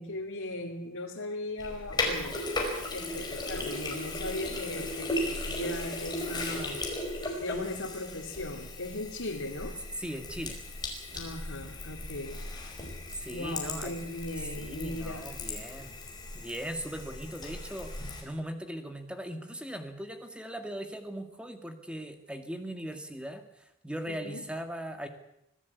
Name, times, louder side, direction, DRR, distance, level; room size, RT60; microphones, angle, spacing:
voice 1, 0.0-2.4 2.9-6.8 7.4-9.8 11.1-12.4 13.3-15.3 24.1-24.4, left 2 dB, 85° left, -3 dB, 2.8 m, -38 dB
Sink (filling or washing), 1.6-18.2, left 2 dB, 20° left, 5.0 m, -36 dB
voice 2, 10.0-10.6 13.2-13.9 14.6-16.0 16.3-17.9 18.2-25.1, equal, 5° right, 6 dB, 2.1 m, -39 dB
25.0 x 16.0 x 8.4 m, 0.81 s
head